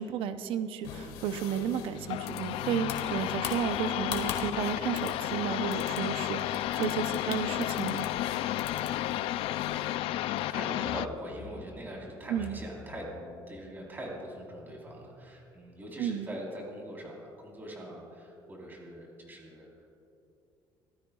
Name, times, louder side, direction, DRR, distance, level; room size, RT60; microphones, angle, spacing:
voice 1, 0.0-8.0 12.3-12.6 16.0-16.3, right 8 dB, 70° right, 10 dB, 0.7 m, -33 dB
sound 1, 0.8-10.0, left 8 dB, 90° left, 1.6 m, -43 dB
sound 2, 2.0-11.1, left 14 dB, 70° left, 0.4 m, -32 dB
voice 2, 8.5-9.1 10.5-13.1 13.5-19.7, right 1 dB, 20° right, -2 dB, 3.9 m, -42 dB
sound 3, 10.7-15.7, left 5 dB, 40° left, 3.8 m, -50 dB
25.0 x 16.0 x 2.4 m, 2.9 s
cardioid pair, 145°, 10 cm